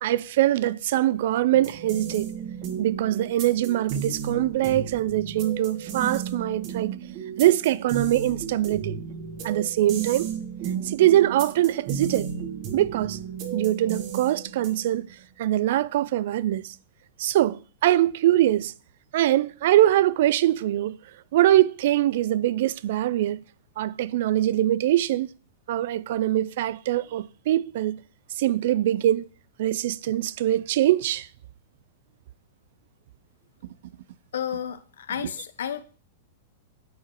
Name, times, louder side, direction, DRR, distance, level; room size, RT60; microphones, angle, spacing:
voice 1, 0.0-2.3 2.8-7.0 7.4-9.0 9.4-10.3 10.8-12.3 12.7-13.2 13.5-15.1 15.4-16.7 17.2-18.7 19.1-21.0 21.3-23.4 23.8-25.3 25.7-28.0 28.4-29.2 29.6-31.3, right 13 dB, 65° right, 0.3 m, -23 dB
sound 1, 1.5-15.0, right 7 dB, 45° right, 1.4 m, -34 dB
voice 2, 34.3-35.8, left 9 dB, 85° left, 0.6 m, -32 dB
8.4 x 3.8 x 4.4 m
hypercardioid pair, 145°, 0 cm